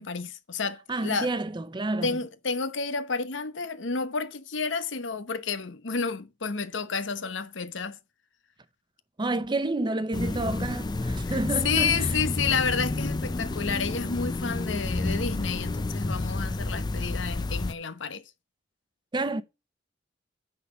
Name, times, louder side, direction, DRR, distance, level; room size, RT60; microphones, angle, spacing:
voice 1, 0.0-1.3 2.0-8.0 11.2-11.4 11.6-18.2, left 5 dB, 80° left, 1.0 m, -30 dB
voice 2, 0.9-2.2 9.2-12.1 19.1-19.4, right 2 dB, 25° right, 0.6 m, -29 dB
sound 1, 10.1-17.7, left 2 dB, 20° left, 0.4 m, -30 dB
9.6 x 4.2 x 6.4 m
head